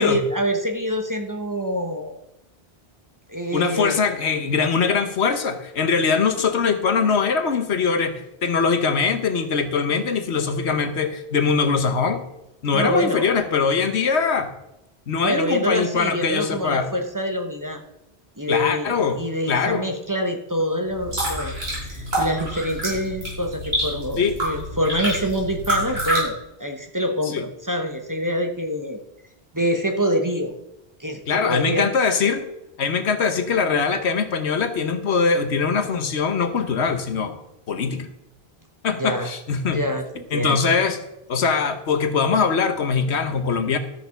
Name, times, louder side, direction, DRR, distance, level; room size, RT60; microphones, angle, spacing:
voice 1, 0.0-2.1 3.3-4.0 12.7-13.3 15.2-17.8 18.4-21.5 21.8-29.0 29.5-30.5 31.0-31.9 39.0-39.3 39.7-40.6, equal, 20° right, 4 dB, 1.0 m, -26 dB
voice 2, 3.5-12.2 12.6-14.5 15.1-16.9 18.5-19.2 19.5-19.9 24.2-24.4 27.3-27.4 31.3-32.5 32.8-37.4 37.7-38.1 38.8-39.8 40.3-41.0 41.3-43.8, left 5 dB, 85° left, 9 dB, 1.3 m, -22 dB
sound 1, 20.9-26.2, equal, 70° right, 5.4 m, -27 dB
13.0 x 6.8 x 5.8 m, 0.86 s
omnidirectional pair, 1.1 m